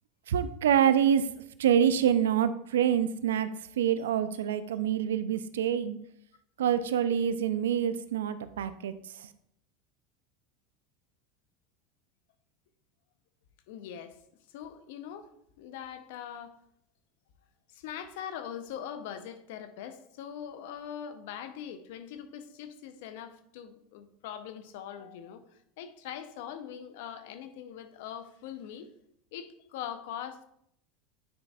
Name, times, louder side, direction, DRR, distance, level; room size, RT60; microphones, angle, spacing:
voice 1, 0.3-1.3 1.6-3.5 3.8-6.0 6.6-9.3, right 9 dB, 85° right, 0.4 m, -26 dB
voice 2, 13.7-14.2 14.5-15.3 15.6-16.6 17.7-25.4 25.8-28.9 29.3-30.4, left 9 dB, 70° left, 0.7 m, -42 dB
9.6 x 5.3 x 2.4 m
hypercardioid pair, 90°, 0 cm